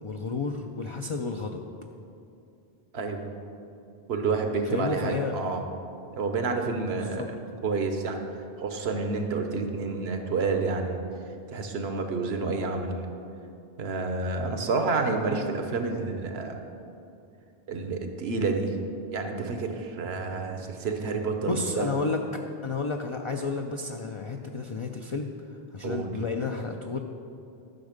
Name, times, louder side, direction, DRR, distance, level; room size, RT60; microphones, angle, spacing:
voice 1, 0.0-1.6 4.6-5.3 6.9-7.3 21.4-25.3 25.7-27.0, left 4 dB, 45° left, 3 dB, 0.4 m, -31 dB
voice 2, 2.9-3.4 4.1-5.6 6.1-7.3 7.6-8.2 8.6-11.0 11.5-12.9 13.8-16.6 17.7-18.8 19.1-21.9 25.8-26.3, right 4 dB, 80° right, 5 dB, 1.2 m, -29 dB
11.5 x 6.3 x 5.1 m, 2.7 s
omnidirectional pair, 1.1 m